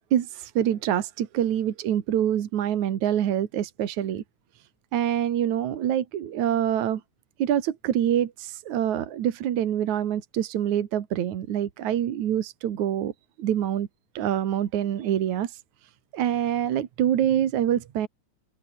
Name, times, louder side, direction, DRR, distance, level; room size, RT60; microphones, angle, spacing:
voice 1, 0.1-4.2 4.9-7.0 7.4-13.1 13.4-13.9 14.1-15.5 16.1-18.1, right 10 dB, 75° right, 2.9 m, -25 dB
omnidirectional pair, 3.4 m